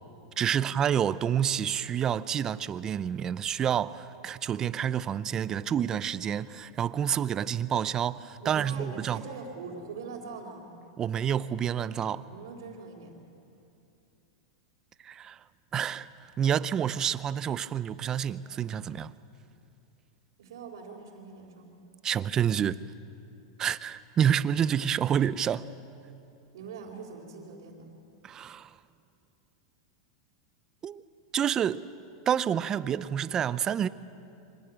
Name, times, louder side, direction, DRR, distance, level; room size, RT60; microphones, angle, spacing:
voice 1, 0.4-9.2 11.0-12.3 15.0-15.4 15.7-16.1 16.4-19.1 22.0-22.8 23.6-25.7 28.2-28.7 30.8-31.0 31.3-31.8 32.3-33.9, right 9 dB, 25° right, 0.6 m, -28 dB
voice 2, 8.4-10.7 12.2-13.1 20.4-21.8 26.5-27.9, right 4 dB, 80° right, 4.0 m, -43 dB
25.5 x 18.0 x 8.8 m
supercardioid pair, 135°, 2 cm